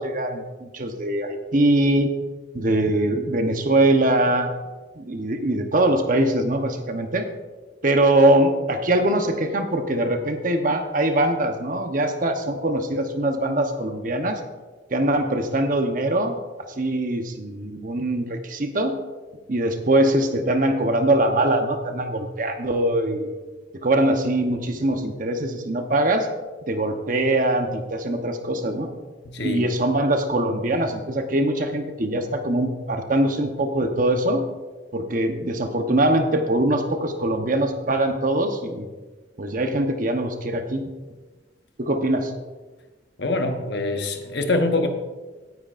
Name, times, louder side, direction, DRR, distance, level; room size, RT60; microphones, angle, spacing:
voice 1, 0.0-2.1 2.5-4.5 5.0-7.3 7.8-14.4 14.9-16.4 16.8-19.0 19.5-23.3 23.7-26.3 26.7-28.9 29.4-34.4 34.9-38.9 39.4-40.8 41.8-42.3, right 1 dB, 45° right, 5 dB, 1.0 m, -22 dB
voice 2, 29.2-29.7 43.2-44.9, left 2 dB, 65° left, 5 dB, 1.1 m, -24 dB
17.0 x 9.5 x 2.6 m, 1.3 s
head